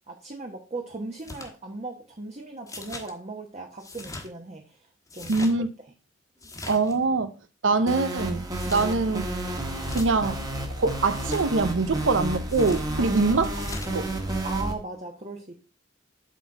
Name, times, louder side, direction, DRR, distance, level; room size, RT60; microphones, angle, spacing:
voice 1, 0.1-4.8 5.1-5.5 13.0-13.4 14.4-15.5, right 3 dB, 35° right, 1.1 m, -37 dB
sound 1, 1.2-1.5 2.7-3.1 3.8-4.3 5.1-5.5 6.4-7.0 8.5-8.9 9.7-10.1 11.1-11.5 12.5-12.9 13.5-13.9, left 2 dB, 15° left, 1.3 m, -40 dB
voice 2, 5.3-5.7 6.7-7.3 7.6-9.3 9.9-10.4 10.8-13.6 13.9-14.1, right 3 dB, 70° right, 0.6 m, -24 dB
sound 2, 7.9-14.7, right 1 dB, 20° right, 1.4 m, -31 dB
8.1 x 4.1 x 5.9 m
head